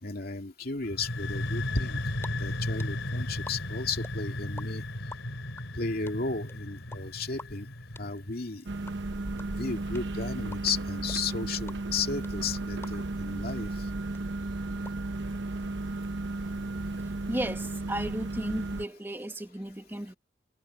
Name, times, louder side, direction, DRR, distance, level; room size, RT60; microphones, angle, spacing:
voice 1, 0.0-2.0 2.4-4.8 5.8-7.7 8.0-8.6 9.6-13.7, left 4 dB, 50° left, 2.5 m, -34 dB
sound 1, 0.8-8.5, left 1 dB, 85° left, 3.5 m, -35 dB
sound 2, 2.2-2.3 2.5-4.6 4.9-13.2 13.5-13.6 13.8-14.9, left 2 dB, 15° left, 3.2 m, -46 dB
sound 3, 8.7-18.9, right 2 dB, 65° right, 1.0 m, -34 dB
voice 2, 17.3-20.1, right 1 dB, 10° right, 1.7 m, -34 dB
head